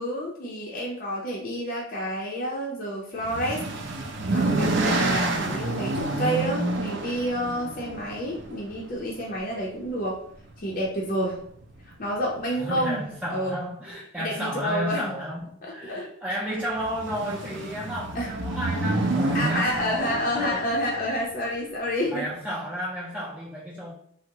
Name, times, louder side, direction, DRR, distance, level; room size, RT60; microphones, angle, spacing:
voice 1, 0.0-3.6 4.3-10.2 10.6-11.4 12.0-13.0 13.3-13.6 14.2-15.1 15.6-16.1 18.1-18.3 19.3-22.3, equal, 40° left, -4 dB, 0.5 m, -29 dB
sound 1, 3.2-9.4 10.4-10.8 11.1-11.2 11.5-11.6 16.7-21.1, right 2 dB, 60° right, 0.4 m, -28 dB
voice 2, 12.6-20.6 21.5-21.6 22.1-23.9, equal, 5° right, -7 dB, 0.5 m, -32 dB
3.5 x 2.0 x 2.8 m, 0.63 s
head